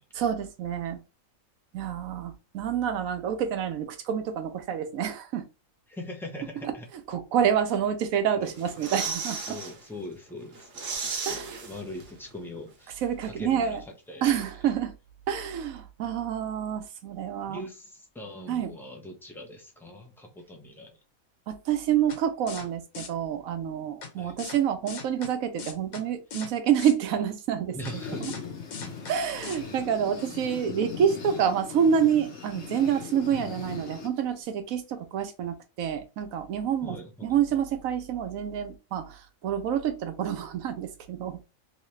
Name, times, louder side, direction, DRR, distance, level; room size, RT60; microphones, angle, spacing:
voice 1, 0.1-1.0 1.7-5.5 6.6-6.7 7.1-9.6 11.3-11.6 13.0-13.8 14.2-14.9 15.3-17.6 18.5-18.7 21.5-27.8 28.2-28.3 29.1-37.0 37.2-41.5, right 8 dB, 80° right, 1.1 m, -28 dB
voice 2, 5.9-6.9 8.4-8.5 9.5-13.8 14.1-14.2 17.5-21.0 24.2-24.4 27.7-28.3 36.8-37.4, left 1 dB, 5° left, 0.5 m, -41 dB
sound 1, 8.4-9.7 10.1-10.2 10.5-12.3 12.5-12.6, right 4 dB, 50° right, 1.0 m, -35 dB
sound 2, 22.1-22.2 22.5-22.7 22.9-23.1 24.0-24.1 24.4-24.6 24.9-25.3 25.6-26.0 26.3-26.5 26.8-26.9 27.9-28.0 28.2-28.4 28.7-29.1 29.4-29.6, left 5 dB, 85° left, 1.3 m, -39 dB
sound 3, 27.8-34.4, left 6 dB, 60° left, 1.1 m, -40 dB
3.1 x 2.8 x 3.1 m
omnidirectional pair, 1.4 m